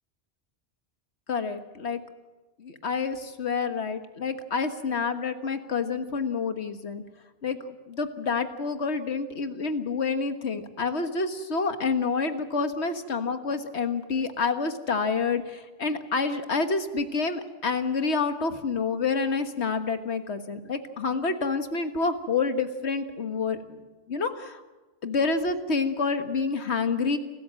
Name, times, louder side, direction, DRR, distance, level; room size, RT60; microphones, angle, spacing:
voice 1, 1.3-2.0 2.6-7.0 7.4-24.6 25.0-27.2, left 4 dB, 75° left, 8 dB, 1.8 m, -28 dB
29.5 x 13.5 x 7.6 m, 1.2 s
omnidirectional pair, 1.1 m